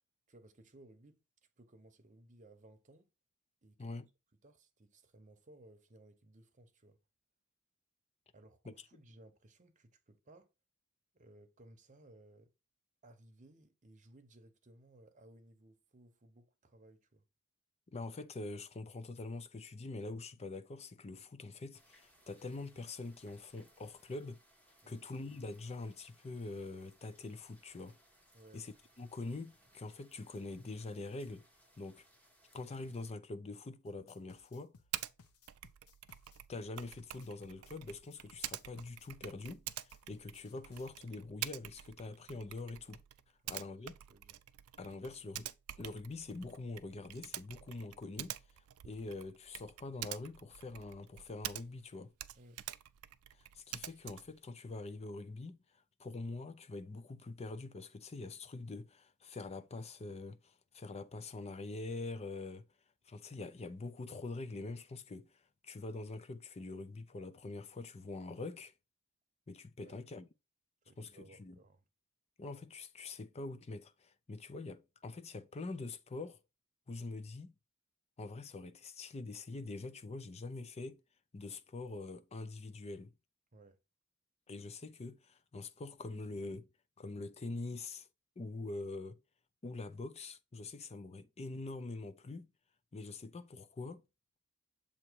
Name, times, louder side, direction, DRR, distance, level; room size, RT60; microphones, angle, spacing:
voice 1, 0.3-1.2 1.6-3.1 3.6-3.9 4.4-7.0 8.3-10.5 11.1-12.5 13.0-17.3 24.8-25.1 28.3-28.6 43.4-43.8 44.1-44.4 52.3-52.6 69.8-70.0 70.8-71.8 83.5-83.8, right 1 dB, 35° right, 0.9 m, -60 dB
voice 2, 17.9-24.4 24.9-28.0 28.5-31.5 31.8-32.0 32.5-34.7 36.5-43.0 43.5-43.9 44.8-48.4 48.8-52.1 53.3-62.7 63.1-68.7 69.5-70.3 71.0-71.6 72.4-76.4 76.9-77.5 78.2-81.0 81.3-83.1 84.5-86.7 87.0-88.1 88.4-89.2 89.6-92.5 92.9-94.0, left 3 dB, 30° left, 0.5 m, -44 dB
sound 1, 21.7-33.1, equal, 5° left, 1.2 m, -67 dB
sound 2, 33.9-40.9, left 4 dB, 85° left, 0.7 m, -63 dB
Typing, 34.9-35.1 35.5-51.9 52.2-54.4, right 13 dB, 75° right, 0.4 m, -47 dB
7.2 x 2.9 x 4.5 m
head